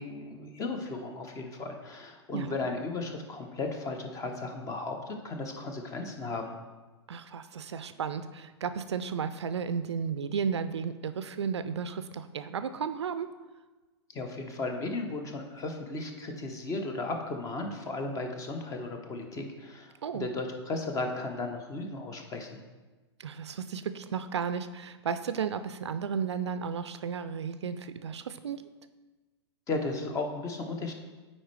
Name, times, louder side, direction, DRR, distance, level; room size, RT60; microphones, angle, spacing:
voice 1, 0.0-6.6 14.1-22.6 29.7-30.9, left 3 dB, 20° left, 5 dB, 0.8 m, -35 dB
voice 2, 7.1-13.3 20.0-20.3 23.2-28.6, right 6 dB, 70° right, 11 dB, 0.4 m, -33 dB
9.1 x 4.3 x 3.2 m, 1.2 s
figure-of-eight pair, 105°, 15 cm